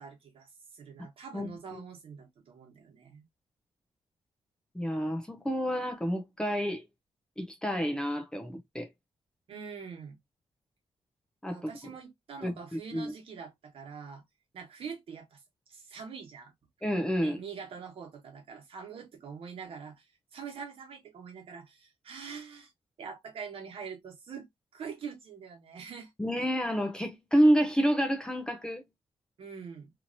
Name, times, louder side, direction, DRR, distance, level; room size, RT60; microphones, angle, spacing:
voice 1, 0.0-3.2 9.5-10.2 11.5-14.2 14.5-15.4 15.7-16.5 17.2-22.7 23.0-24.5 24.7-26.1 29.4-29.9, right 6 dB, 60° right, 1.3 m, -44 dB
voice 2, 1.3-1.8 4.7-6.9 7.4-8.9 11.4-11.7 12.4-13.1 16.8-17.4 26.2-28.8, equal, 10° left, 0.5 m, -29 dB
3.0 x 2.8 x 2.6 m
wide cardioid pair, 160°, 10 cm